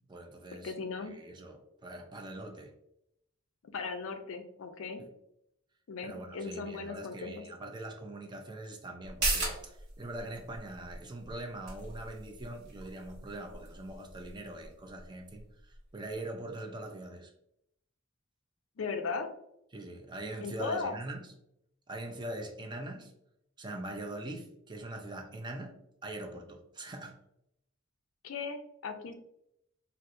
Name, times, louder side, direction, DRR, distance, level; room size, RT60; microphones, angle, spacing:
voice 1, 0.1-0.7 1.0-2.7 5.0-5.1 6.0-17.3 19.7-21.2 21.9-23.1 23.6-27.2, right 1 dB, 25° right, 3 dB, 0.5 m, -42 dB
voice 2, 0.6-1.1 3.7-5.0 5.9-7.4 18.8-19.3 20.4-21.0 28.2-29.1, left 4 dB, 85° left, 7 dB, 0.4 m, -37 dB
sound 1, 9.0-16.2 16.5-16.6, right 2 dB, 55° right, 1.0 m, -39 dB
4.3 x 2.1 x 2.5 m, 0.78 s
head